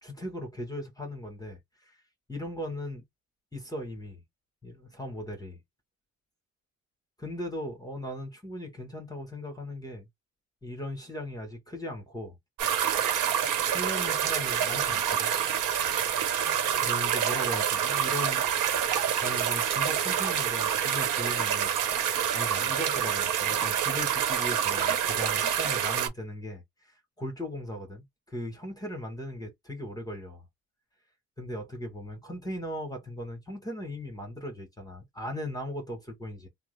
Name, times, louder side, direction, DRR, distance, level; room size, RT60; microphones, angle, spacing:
voice 1, 0.0-2.0 2.3-3.0 3.5-4.2 4.6-5.6 7.2-10.1 10.6-12.4 13.4-15.3 16.8-18.4 19.2-21.7 22.3-30.5 31.4-36.5, left 1 dB, 10° left, 1.3 m, -38 dB
sound 1, 12.6-26.1, right 9 dB, 85° right, 1.0 m, -27 dB
3.1 x 2.0 x 3.2 m
cardioid pair, 90°, 30 cm